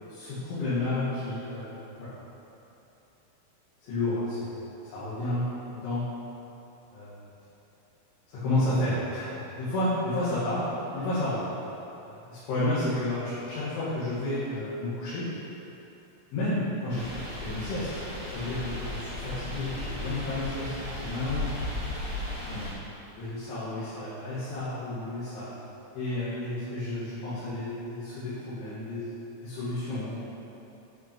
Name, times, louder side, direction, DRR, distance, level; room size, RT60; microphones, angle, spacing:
voice 1, 0.1-2.1 3.8-4.5 4.8-5.4 5.8-6.0 6.9-7.1 8.3-9.3 9.6-10.6 10.9-11.5 12.0-15.3 16.3-17.1 17.4-17.9 18.3-21.5 22.5-22.7 23.2-25.5 25.9-29.1 29.4-30.2, left 1 dB, 90° left, -13 dB, 4.7 m, -31 dB
sound 1, 16.9-22.7, left 1 dB, 65° left, 0.5 m, -35 dB
11.5 x 6.1 x 5.4 m, 3.0 s
omnidirectional pair, 5.3 m